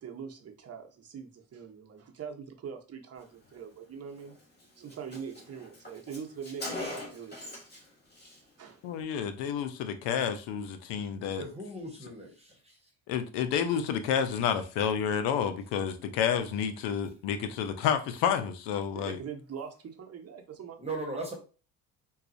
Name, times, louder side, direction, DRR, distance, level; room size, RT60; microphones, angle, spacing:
voice 1, 0.0-4.3 4.8-7.6 8.6-8.8 18.9-20.8, right 7 dB, 35° right, 0.8 m, -43 dB
Car, 4.2-4.3 4.6-4.7 4.9-7.9 8.1-8.4, left 2 dB, 25° left, 1.6 m, -41 dB
voice 2, 8.8-11.4 13.1-19.2, left 8 dB, 85° left, 0.7 m, -30 dB
voice 3, 11.4-12.8 20.8-21.3, right 2 dB, 15° right, 1.1 m, -38 dB
4.0 x 2.3 x 2.6 m
cardioid pair, 90°, 41 cm